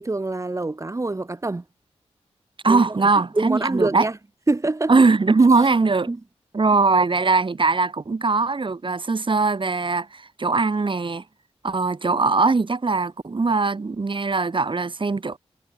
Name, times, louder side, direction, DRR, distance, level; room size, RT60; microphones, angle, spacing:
voice 1, 0.0-1.6 2.7-2.8 3.3-4.2 4.5-4.9 5.5-5.7 6.1-6.2, right 2 dB, 25° right, 1.4 m, -25 dB
voice 2, 2.6-4.1 4.9-6.1 6.5-11.2 11.6-15.4, right 4 dB, 45° right, 6.3 m, -20 dB
wide cardioid pair, 85°, 11 cm